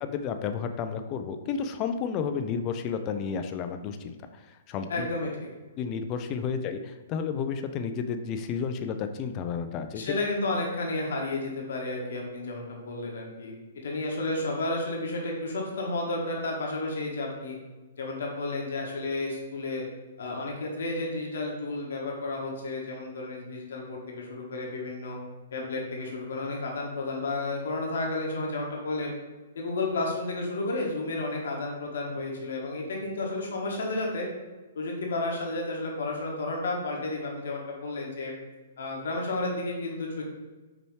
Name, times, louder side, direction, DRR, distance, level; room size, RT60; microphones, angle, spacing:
voice 1, 0.0-5.1 5.8-10.1, left 6 dB, 30° left, 8 dB, 0.4 m, -32 dB
voice 2, 4.9-5.3 9.9-13.5 13.8-17.6 18.0-19.8 20.2-25.2 25.5-29.1 29.5-34.3 34.8-38.3 38.8-40.2, left 2 dB, 70° left, -1 dB, 1.2 m, -32 dB
5.4 x 3.0 x 3.1 m, 1.2 s
hypercardioid pair, 135°, 0 cm